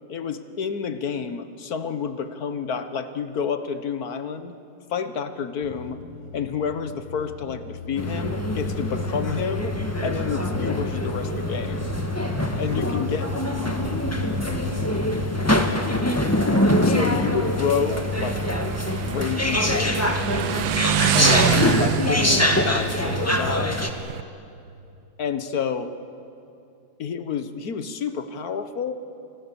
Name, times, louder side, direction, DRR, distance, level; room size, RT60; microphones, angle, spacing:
voice 1, 0.1-4.5 4.9-6.0 6.3-9.8 10.0-11.9 12.6-13.3 16.8-18.4 18.9-20.1 21.1-23.9 25.2-25.9 27.0-28.9, left 6 dB, 55° left, 10 dB, 1.6 m, -29 dB
sound 1, 5.6-23.5, left 6 dB, 85° left, 1.9 m, -39 dB
sound 2, 8.0-23.9, left 1 dB, 10° left, 1.4 m, -24 dB
Motorcycle, 11.3-24.2, right 10 dB, 85° right, 1.6 m, -29 dB
voice 2, 12.2-16.3, equal, 40° right, -2 dB, 6.9 m, -44 dB
30.0 x 28.5 x 7.1 m, 2.7 s
omnidirectional pair, 2.1 m